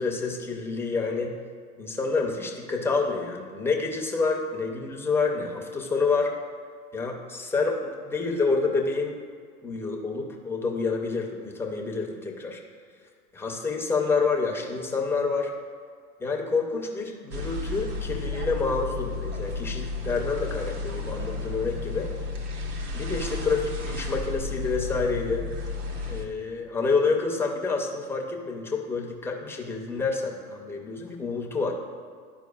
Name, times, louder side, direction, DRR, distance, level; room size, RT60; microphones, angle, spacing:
voice 1, 0.0-1.3 1.8-6.3 6.9-9.2 9.6-12.6 13.3-15.5 16.2-22.1 22.9-25.5 26.1-31.7, left 4 dB, 5° left, 0 dB, 0.4 m, -28 dB
sound 1, 17.3-26.3, left 3 dB, 75° right, 1.1 m, -32 dB
11.5 x 4.6 x 2.3 m, 2.1 s
hypercardioid pair, 105°, 46 cm